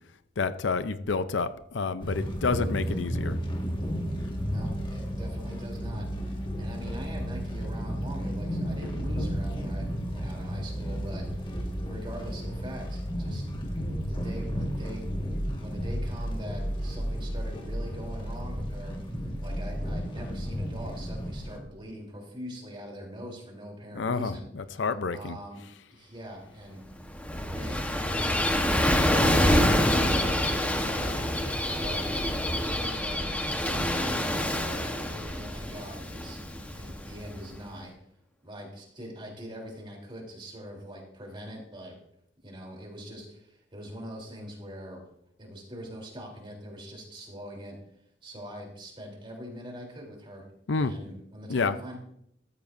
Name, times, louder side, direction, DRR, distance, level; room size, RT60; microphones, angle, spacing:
voice 1, 0.4-3.4 23.9-25.4 50.7-50.9 51.5-51.7, left 4 dB, 70° left, 12 dB, 0.6 m, -29 dB
sound 1, 2.0-21.6, equal, 25° left, 1.7 m, -33 dB
voice 2, 4.4-11.5 11.9-13.4 14.1-19.0 19.4-24.5 25.1-25.6 25.9-26.8 27.5-27.8 28.1-28.4 28.9-31.2 31.6-32.2 32.6-37.9 38.4-41.9 42.4-45.0 45.4-47.8 48.2-50.4 50.7-52.0, equal, 30° right, -1 dB, 3.4 m, -42 dB
Gull seagull / Waves surf, 26.9-37.5, left 1 dB, 10° left, 1.1 m, -27 dB
14.0 x 13.5 x 2.6 m, 0.74 s
head